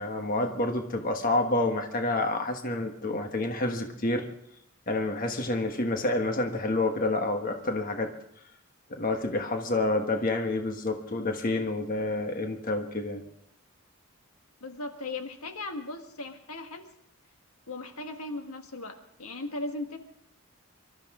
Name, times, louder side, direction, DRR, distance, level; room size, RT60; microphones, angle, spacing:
voice 1, 0.0-4.2 4.9-8.1 8.9-13.2, left 2 dB, 40° left, 5 dB, 1.3 m, -28 dB
voice 2, 14.6-16.9 17.7-20.0, left 2 dB, 90° left, 6 dB, 1.7 m, -37 dB
24.5 x 13.0 x 3.7 m, 0.72 s
head